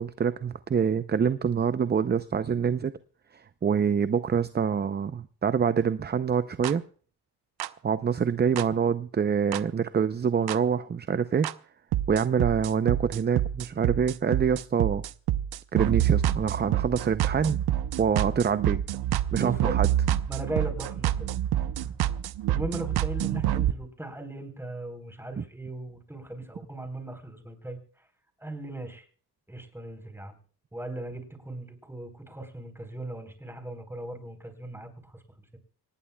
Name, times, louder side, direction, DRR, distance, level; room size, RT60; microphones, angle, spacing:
voice 1, 0.0-3.0 3.3-6.8 7.8-11.5 12.1-15.0 15.7-17.6 18.0-18.8 19.3-19.9 25.4-25.5, right 7 dB, 25° right, 12 dB, 0.6 m, -26 dB
sound 1, 6.6-6.7 7.6-7.7 8.6-8.7 9.5-9.6 10.5-10.6 11.4-11.5 11.9-23.7, right 12 dB, 75° right, 0.8 m, -27 dB
voice 2, 19.4-19.8 20.3-21.3 22.5-27.8 28.4-29.0 29.5-30.4 30.7-35.2, right 1 dB, 5° right, 6 dB, 3.9 m, -38 dB
25.0 x 19.0 x 2.3 m, 0.43 s
cardioid pair, 105°, 39 cm